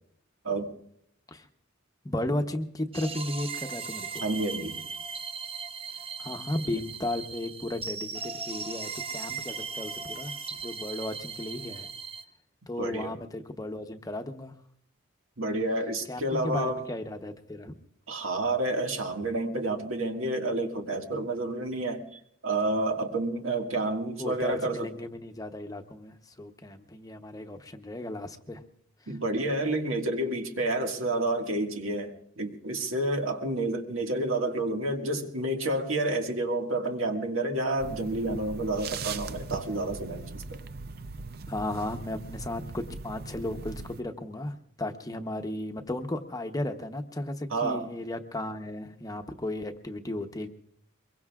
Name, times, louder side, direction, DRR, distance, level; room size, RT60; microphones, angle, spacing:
voice 1, 2.0-4.3 6.2-11.9 12.7-14.5 16.1-17.7 24.2-28.6 41.5-50.5, left 1 dB, 20° left, 0.8 m, -35 dB
sound 1, 2.9-12.2, right 5 dB, 30° right, 0.9 m, -38 dB
voice 2, 4.2-4.8 12.8-13.2 15.4-16.8 18.1-22.0 22.4-24.9 29.1-40.6 47.5-47.9, right 2 dB, 80° right, 1.8 m, -29 dB
sound 2, 37.8-44.0, right 4 dB, 50° right, 0.6 m, -40 dB
23.5 x 22.5 x 2.4 m
head